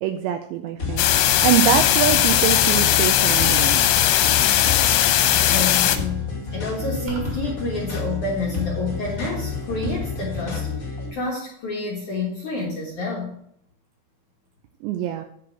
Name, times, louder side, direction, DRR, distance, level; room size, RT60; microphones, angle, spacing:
voice 1, 0.0-3.8 14.8-15.3, right 11 dB, 85° right, 6 dB, 2.6 m, -24 dB
sound 1, 0.8-11.1, left 5 dB, 40° left, 1.8 m, -30 dB
sound 2, 1.0-6.0, left 12 dB, 85° left, 3.1 m, -18 dB
voice 2, 5.4-6.3 6.5-13.3, left 2 dB, 65° left, -4 dB, 2.0 m, -29 dB
sound 3, 7.1-7.6, right 2 dB, 55° right, 2.4 m, -35 dB
10.0 x 4.8 x 6.0 m, 0.68 s
omnidirectional pair, 5.6 m